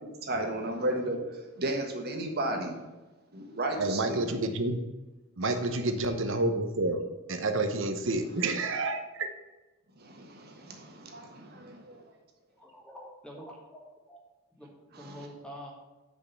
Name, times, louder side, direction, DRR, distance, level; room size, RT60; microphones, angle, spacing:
voice 1, 0.0-2.9 3.3-4.2 10.0-12.0 14.9-15.3, right 1 dB, 50° right, 2 dB, 1.4 m, -34 dB
voice 2, 3.8-4.7 5.4-7.0 7.3-9.3, right 2 dB, 65° right, 7 dB, 0.9 m, -29 dB
voice 3, 12.6-14.2 14.6-15.7, equal, 5° left, -2 dB, 1.3 m, -46 dB
6.3 x 5.2 x 6.8 m, 1.1 s
head